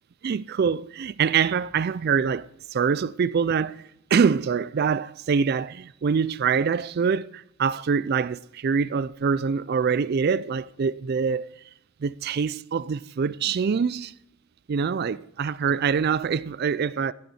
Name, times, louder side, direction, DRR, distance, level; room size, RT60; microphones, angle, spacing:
voice 1, 0.2-3.8 4.1-11.5 12.0-14.1 14.7-17.1, right 6 dB, 45° right, 0.3 m, -24 dB
15.0 x 8.2 x 4.3 m
head